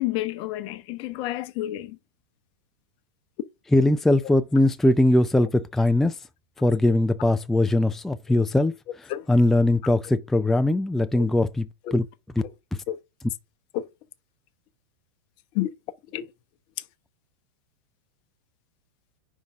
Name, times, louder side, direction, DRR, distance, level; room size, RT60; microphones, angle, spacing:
voice 1, 0.0-2.0 9.1-9.2 11.2-11.3 11.9-12.0 12.9-13.0 13.7-13.9 15.5-15.7 16.1-16.2, left 14 dB, 45° left, 0.7 m, -29 dB
voice 2, 3.7-6.2 6.6-12.1 12.7-12.8, left 1 dB, 5° left, 0.3 m, -21 dB
5.2 x 3.7 x 5.8 m
hypercardioid pair, 105°, 12 cm